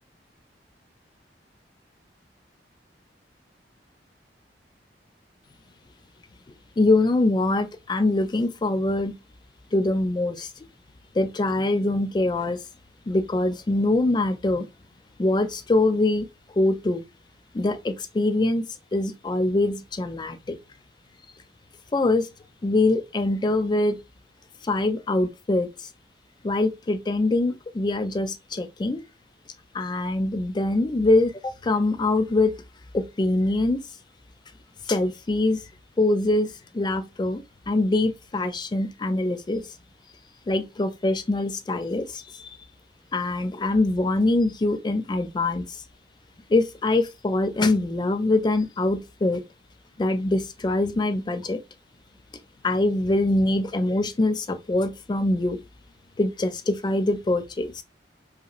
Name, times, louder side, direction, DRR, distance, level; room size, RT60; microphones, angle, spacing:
voice 1, 6.8-9.1 9.7-10.5 11.1-12.6 13.1-14.7 15.2-16.3 16.6-17.0 17.5-18.6 18.9-20.6 21.9-22.3 22.6-24.0 24.6-25.7 26.4-29.0 29.7-32.5 32.9-33.8 34.9-35.6 36.0-37.4 37.7-39.6 40.5-42.6 43.1-45.8 46.5-49.4 50.0-51.6 52.6-55.6 56.2-57.8, left 2 dB, 25° left, 0.3 m, -23 dB
2.9 x 2.7 x 2.4 m
head